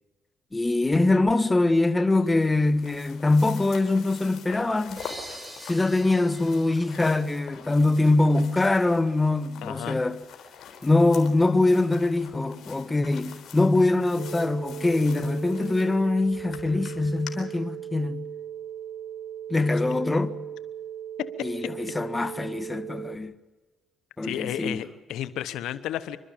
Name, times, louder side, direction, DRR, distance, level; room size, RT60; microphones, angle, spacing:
voice 1, 0.5-5.0 5.6-10.2 10.8-18.2 19.5-20.4 21.4-23.3 24.2-24.8, left 2 dB, 20° left, 1.4 m, -23 dB
sound 1, 2.1-17.3, left 8 dB, 70° left, 4.0 m, -46 dB
sound 2, 5.0-8.5, right 1 dB, 15° right, 4.8 m, -45 dB
voice 2, 9.6-10.0 21.2-21.7 24.2-26.2, left 12 dB, 85° left, 1.0 m, -32 dB
sound 3, 14.2-23.2, right 10 dB, 85° right, 1.7 m, -38 dB
27.0 x 13.0 x 8.9 m
cardioid pair, 90°, 0 cm